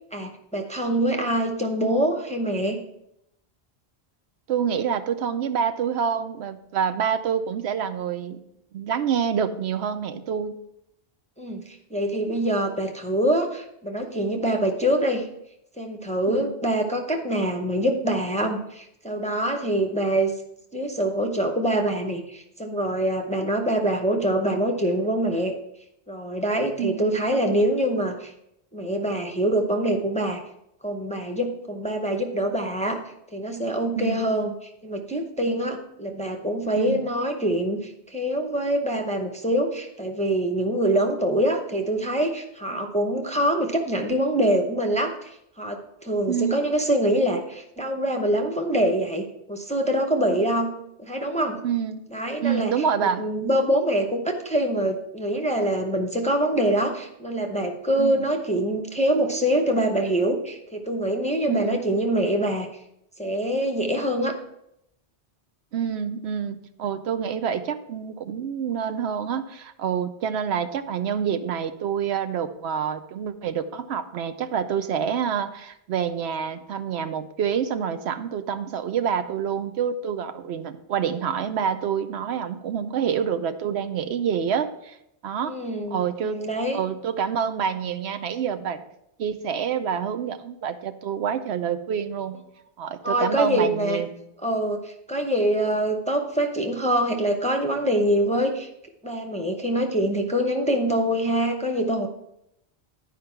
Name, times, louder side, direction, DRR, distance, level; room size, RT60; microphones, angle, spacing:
voice 1, 0.1-2.8 11.4-15.3 15.8-20.3 20.7-25.5 26.1-28.3 28.7-30.4 30.8-33.0 33.3-34.5 34.8-50.7 51.0-51.6 52.1-52.7 53.0-62.7 63.2-64.3 85.4-86.8 93.0-94.0 94.4-98.7 99.0-102.1, right 1 dB, 10° left, 3 dB, 0.7 m, -25 dB
voice 2, 4.5-8.4 8.7-10.5 16.3-16.5 26.8-27.1 34.0-34.2 36.7-37.0 42.7-42.9 46.3-46.6 50.3-50.4 51.6-52.0 52.4-53.2 58.0-58.3 61.5-61.8 65.7-85.0 85.2-85.5 85.9-86.4 86.7-88.8 89.2-92.4 92.8-94.1, right 7 dB, 80° right, 9 dB, 0.9 m, -27 dB
10.5 x 5.0 x 4.5 m, 0.80 s
omnidirectional pair, 1.1 m